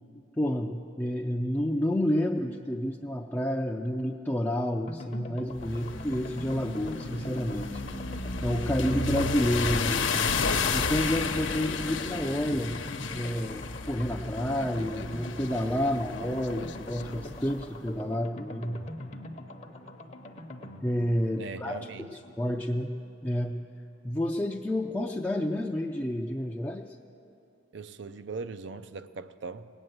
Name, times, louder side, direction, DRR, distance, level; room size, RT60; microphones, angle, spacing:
voice 1, 0.4-7.8 8.4-10.0 10.7-12.8 13.1-18.8 20.8-22.1 22.4-22.9 23.2-23.6 24.0-26.8, left 1 dB, 10° left, 0 dB, 0.4 m, -29 dB
sound 1, 4.9-23.5 23.8-23.9 24.1-24.2, left 1 dB, 40° left, 0.8 m, -44 dB
sound 2, 5.5-17.7, left 4 dB, 90° left, 0.9 m, -33 dB
Human voice, 11.5-17.5, left 3 dB, 65° left, 0.6 m, -47 dB
voice 2, 21.4-22.2 27.7-29.7, right 4 dB, 65° right, 13 dB, 0.5 m, -40 dB
19.0 x 9.0 x 7.9 m, 2.7 s
head